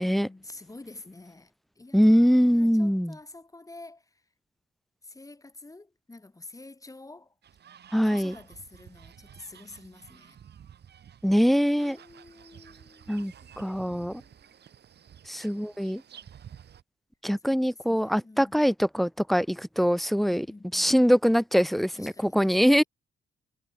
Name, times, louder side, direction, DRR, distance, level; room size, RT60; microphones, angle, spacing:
voice 1, 0.0-4.2 5.0-7.3 8.0-10.4 11.8-14.4 17.5-18.7 20.2-20.9 21.9-22.8, left 2 dB, 15° left, 7.9 m, -49 dB
voice 2, 1.9-3.1 7.9-8.4 11.2-12.0 13.1-14.2 15.3-16.0 17.2-20.5 20.7-22.8, equal, ahead, 0.6 m, -23 dB
sound 1, 7.4-16.8, right 9 dB, 55° right, 3.1 m, -52 dB
cardioid pair, 90°, 20 cm